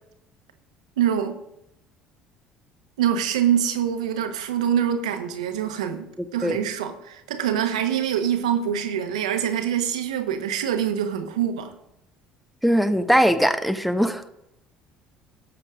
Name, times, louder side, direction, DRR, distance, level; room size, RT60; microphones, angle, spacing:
voice 1, 1.0-1.4 3.0-11.7, right 9 dB, 75° right, 1.2 m, -25 dB
voice 2, 12.6-14.3, equal, ahead, 1.1 m, -20 dB
17.5 x 7.1 x 3.7 m
figure-of-eight pair, 60°, 4 cm